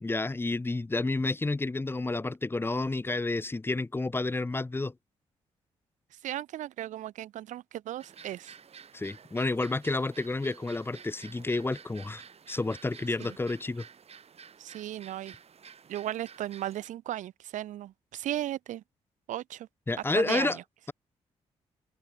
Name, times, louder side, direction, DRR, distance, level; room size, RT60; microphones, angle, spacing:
voice 1, 0.0-4.9 8.9-12.2 12.5-13.9 19.9-20.6, left 2 dB, 15° left, 0.8 m, -30 dB
voice 2, 6.2-8.5 13.2-13.4 14.6-15.4 15.9-18.8 19.3-19.7 20.1-20.6, right 13 dB, 75° right, 1.2 m, -36 dB
sound 1, 8.0-16.9, right 7 dB, 55° right, 4.7 m, -51 dB
supercardioid pair, 60°, 13 cm